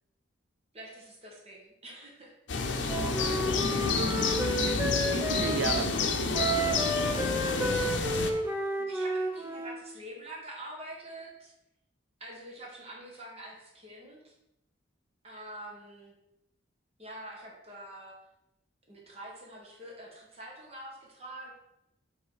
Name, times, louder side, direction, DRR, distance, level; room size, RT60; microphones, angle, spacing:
voice 1, 0.7-2.3 8.2-11.5 12.2-14.3 15.2-16.1 17.0-18.2 18.9-21.5, right 1 dB, 30° right, -2 dB, 1.6 m, -46 dB
sound 1, 2.5-8.3, left 4 dB, 65° left, 0.7 m, -29 dB
Wind instrument woodwind instrument, 2.9-5.9 6.3-9.8, right 1 dB, 10° right, 0.5 m, -31 dB
voice 2, 4.6-7.0, right 6 dB, 75° right, 9 dB, 0.3 m, -36 dB
5.5 x 4.1 x 4.9 m, 0.85 s
head